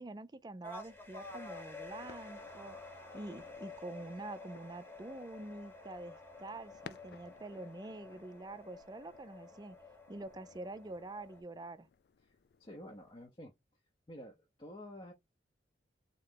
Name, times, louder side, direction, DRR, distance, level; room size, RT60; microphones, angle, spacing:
voice 1, 0.0-2.8 3.1-9.8 10.1-11.9, right 2 dB, 25° right, 0.4 m, -46 dB
sound 1, 0.6-11.4, left 3 dB, 15° left, 1.1 m, -51 dB
sound 2, 1.9-13.3, left 6 dB, 65° left, 0.3 m, -60 dB
voice 2, 12.2-13.5 14.1-15.1, equal, 30° left, 0.8 m, -50 dB
3.7 x 3.3 x 3.8 m
head